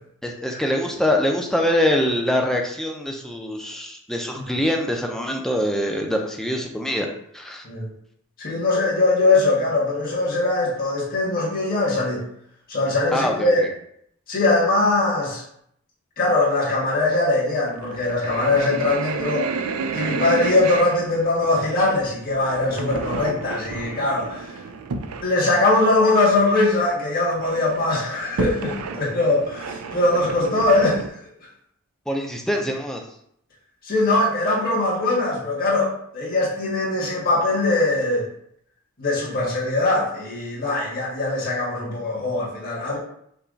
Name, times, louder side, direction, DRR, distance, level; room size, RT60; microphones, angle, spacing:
voice 1, 0.2-7.1 7.3-7.6 13.1-13.7 32.1-33.0, left 1 dB, ahead, 1 dB, 0.5 m, -24 dB
voice 2, 8.4-12.2 12.7-13.6 14.3-15.4 16.2-19.6 19.9-24.5 25.2-31.1 33.8-38.2 39.0-43.0, left 2 dB, 40° left, -6 dB, 1.7 m, -21 dB
sound 1, 17.6-25.3 25.7-25.8 26.2-26.3 26.5-27.0 27.3-31.1, right 4 dB, 90° right, 0.4 m, -31 dB
5.7 x 2.3 x 3.9 m, 0.70 s
head